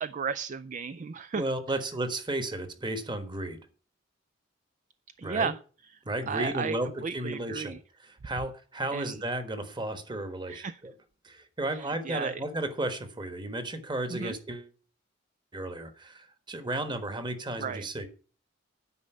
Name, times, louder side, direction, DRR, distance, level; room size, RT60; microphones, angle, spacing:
voice 1, 0.0-1.8 5.2-5.6 5.9-6.0 6.3-6.8 7.0-7.8 8.9-9.2 10.5-10.8 11.7-12.4 14.1-14.4 17.6-17.9, right 5 dB, 40° right, 13 dB, 0.4 m, -34 dB
voice 2, 1.3-3.6 5.2-5.5 6.0-6.9 7.1-7.8 8.0-10.9 11.2-14.7 15.5-18.1, right 1 dB, 25° right, 8 dB, 1.3 m, -33 dB
9.7 x 5.2 x 7.9 m, 0.39 s
head